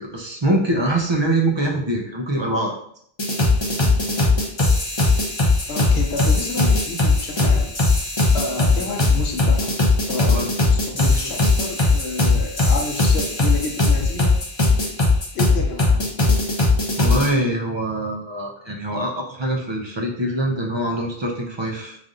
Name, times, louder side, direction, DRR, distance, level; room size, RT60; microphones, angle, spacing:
voice 1, 0.0-2.7 8.7-8.9 10.3-10.5 11.0-11.3 17.0-22.0, right 1 dB, 35° right, 0 dB, 0.5 m, -24 dB
sound 1, 3.2-17.3, left 3 dB, 30° left, 0.7 m, -18 dB
voice 2, 5.7-7.7 8.3-9.8 10.1-14.4 15.3-16.1, left 3 dB, 75° left, 2 dB, 0.9 m, -30 dB
3.3 x 2.6 x 3.7 m, 0.65 s
omnidirectional pair, 1.1 m